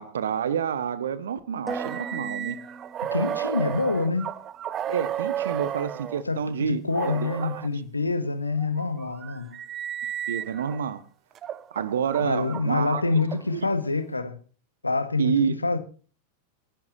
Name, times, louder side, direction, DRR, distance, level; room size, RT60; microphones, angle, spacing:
voice 1, 0.0-2.6 4.9-7.6 10.3-11.0 11.7-13.0 13.5-13.7 15.2-15.6, right 7 dB, 65° right, 1.2 m, -28 dB
sound 1, 1.7-3.6, right 2 dB, 5° right, 1.9 m, -39 dB
sound 2, 1.7-6.2 6.9-7.7 8.4-10.8 11.4-13.7, right 10 dB, 30° right, 0.6 m, -33 dB
voice 2, 3.1-4.3 6.2-9.6 12.2-14.4 14.8-15.8, left 3 dB, 80° left, 1.3 m, -26 dB
28.0 x 11.5 x 2.6 m
figure-of-eight pair, 90°, 0 cm